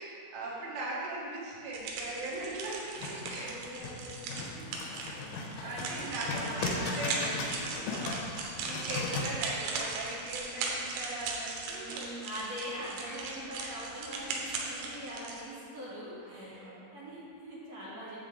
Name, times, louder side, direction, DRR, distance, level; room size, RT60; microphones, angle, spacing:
voice 1, 0.0-3.9 5.6-12.1 13.5-13.7 16.2-16.8, right 2 dB, 75° right, -8 dB, 4.3 m, -40 dB
sound 1, 1.7-15.4, right 4 dB, 90° right, 3.6 m, -38 dB
sound 2, 3.0-9.2, left 4 dB, 80° left, 3.2 m, -37 dB
voice 2, 3.3-7.6 11.6-16.7 16.9-18.2, equal, 45° right, -10 dB, 2.3 m, -43 dB
9.2 x 7.4 x 3.9 m, 2.6 s
omnidirectional pair, 5.8 m